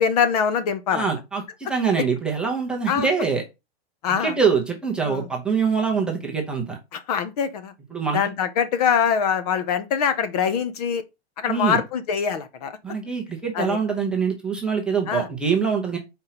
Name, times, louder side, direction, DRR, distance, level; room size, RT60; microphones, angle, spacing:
voice 1, 0.0-1.0 2.9-3.1 4.0-4.3 5.0-5.3 6.9-7.7 8.1-11.0 11.4-12.7 13.5-13.8 15.1-15.3, left 7 dB, 40° left, 0.6 m, -23 dB
voice 2, 0.9-3.4 4.2-6.8 7.9-8.2 11.5-11.8 12.8-16.0, right 5 dB, 5° right, 0.6 m, -24 dB
5.2 x 4.4 x 5.7 m
supercardioid pair, 175°, 32 cm